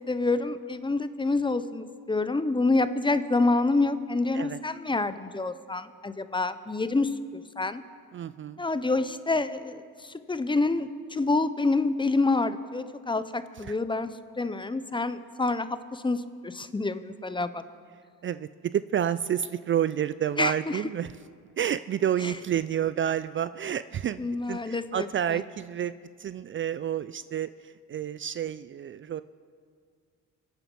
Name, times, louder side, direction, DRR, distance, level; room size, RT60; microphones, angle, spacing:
voice 1, 0.1-7.8 8.6-14.1 14.4-17.7 20.4-20.8 24.2-25.4, left 3 dB, 15° left, 12 dB, 0.7 m, -27 dB
voice 2, 8.1-8.6 18.2-21.2 21.6-25.9 26.2-29.2, right 10 dB, 40° right, 14 dB, 0.4 m, -29 dB
25.5 x 9.1 x 5.4 m, 2.1 s
cardioid pair, 90°, 30 cm